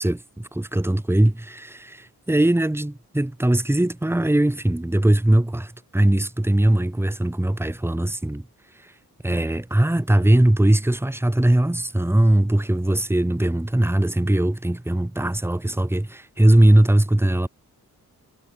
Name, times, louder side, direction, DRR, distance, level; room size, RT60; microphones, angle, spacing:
voice 1, 0.0-8.5 9.2-17.5, right 1 dB, 5° right, 1.2 m, -20 dB
wide cardioid pair, 80°, 37 cm